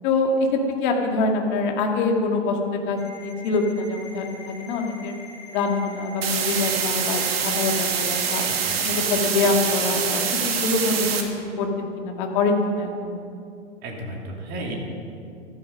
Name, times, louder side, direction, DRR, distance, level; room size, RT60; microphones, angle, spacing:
voice 1, 0.0-5.1 5.5-8.4 8.8-11.3 11.6-13.1, left 3 dB, 40° left, 2 dB, 2.1 m, -24 dB
Ringtone, 3.0-9.0, right 2 dB, 5° left, 4.4 m, -42 dB
sound 1, 6.2-11.2, right 6 dB, 55° right, 1.8 m, -25 dB
voice 2, 8.5-8.8 13.8-14.8, right 1 dB, 30° right, 0 dB, 2.7 m, -34 dB
14.5 x 13.5 x 5.4 m, 2.4 s
figure-of-eight pair, 110°, 36 cm